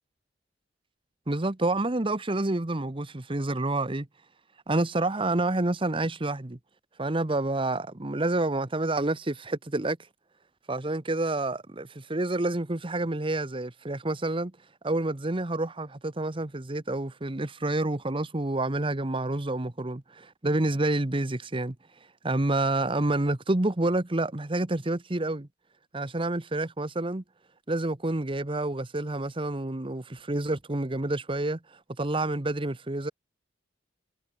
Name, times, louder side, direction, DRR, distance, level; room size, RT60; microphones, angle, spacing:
voice 1, 1.3-4.1 4.7-6.6 7.0-10.0 10.7-14.5 14.8-21.7 22.2-25.5 25.9-27.2 27.7-33.1, right 2 dB, 30° right, 1.1 m, -28 dB
head